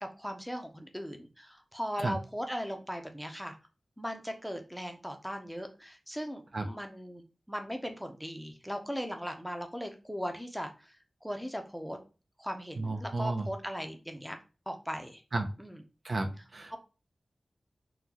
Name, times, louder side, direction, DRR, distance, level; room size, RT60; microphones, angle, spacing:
voice 1, 0.0-3.6 4.0-11.0 11.2-12.0 12.4-14.4 14.7-15.2 15.6-15.8 16.7-16.8, equal, ahead, 5 dB, 0.5 m, -38 dB
voice 2, 12.8-13.5 15.3-15.5 16.0-16.8, right 2 dB, 50° right, 5 dB, 0.4 m, -33 dB
3.7 x 2.2 x 2.8 m, 0.32 s
wide cardioid pair, 90°, 0 cm